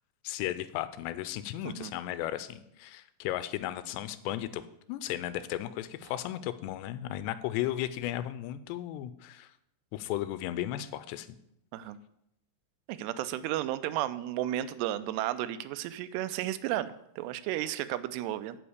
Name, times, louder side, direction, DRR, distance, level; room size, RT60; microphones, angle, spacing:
voice 1, 0.2-4.6 4.9-9.5 9.9-11.3, left 13 dB, 90° left, 13 dB, 2.8 m, -35 dB
voice 2, 12.9-18.6, right 13 dB, 85° right, 13 dB, 2.6 m, -33 dB
10.0 x 5.2 x 8.0 m, 0.78 s
omnidirectional pair, 4.9 m